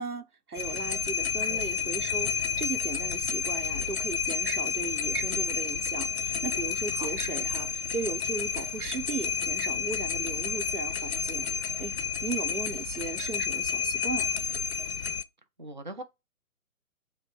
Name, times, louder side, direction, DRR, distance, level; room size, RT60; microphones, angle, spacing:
voice 1, 0.0-11.5 11.8-12.0 12.2-14.4, right 5 dB, 90° right, 0.8 m, -36 dB
sound 1, 0.5-15.2, left 6 dB, 50° left, 0.4 m, -30 dB
voice 2, 6.9-7.4 15.6-16.0, right 1 dB, 35° right, 0.4 m, -42 dB
5.1 x 2.1 x 4.7 m
figure-of-eight pair, 135°, 44 cm